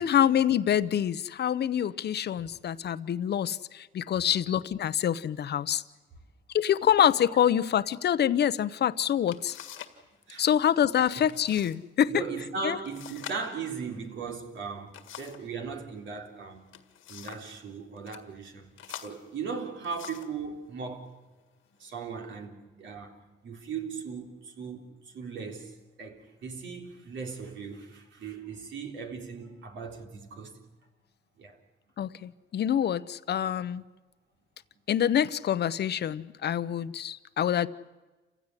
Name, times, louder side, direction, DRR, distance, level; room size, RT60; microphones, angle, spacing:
voice 1, 0.0-5.8 6.5-9.6 10.4-12.1 12.6-12.8 32.0-33.8 34.9-37.7, left 9 dB, 55° left, 0.9 m, -26 dB
sound 1, 9.3-10.0 10.3-10.8 11.3-11.8 12.1-12.2 12.9-15.5 16.5-17.5 18.0-18.2 18.8-20.4 21.2-21.3 21.9-22.4, left 11 dB, 85° left, 1.9 m, -46 dB
voice 2, 12.1-16.7 17.1-21.1 21.8-30.6 31.4-31.6, right 5 dB, 70° right, 3.8 m, -38 dB
28.0 x 16.0 x 9.9 m
cardioid pair, 90°, 20 cm